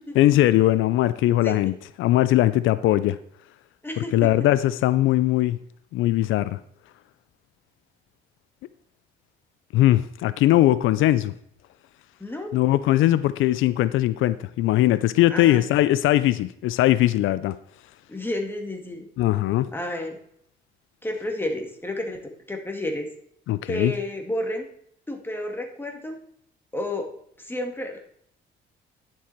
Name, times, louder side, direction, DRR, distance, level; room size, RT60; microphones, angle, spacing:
voice 1, 0.2-3.2 4.0-5.6 5.9-6.6 9.7-11.3 12.5-17.6 19.2-19.7 23.5-23.9, left 14 dB, 85° left, 15 dB, 0.4 m, -20 dB
voice 2, 3.8-4.3 12.2-12.5 15.3-15.7 18.1-19.1 19.7-20.2 21.0-22.2 22.5-23.1 23.7-24.7 25.1-26.2 26.7-27.1 27.4-28.0, left 1 dB, 10° left, 3 dB, 2.1 m, -30 dB
10.5 x 7.5 x 4.5 m, 0.68 s
cardioid pair, 90°, 20 cm